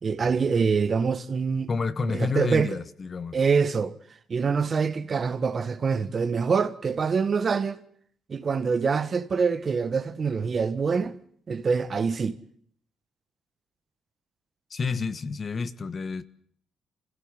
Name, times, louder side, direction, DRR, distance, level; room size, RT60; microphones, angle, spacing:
voice 1, 0.0-1.7 2.1-2.8 3.3-3.9 4.3-7.8 8.3-11.2 11.5-12.4, right 5 dB, 40° right, 1.6 m, -25 dB
voice 2, 1.7-3.4 14.7-16.2, left 4 dB, 40° left, 1.3 m, -29 dB
26.0 x 16.5 x 9.8 m
cardioid pair, 90°, 0 cm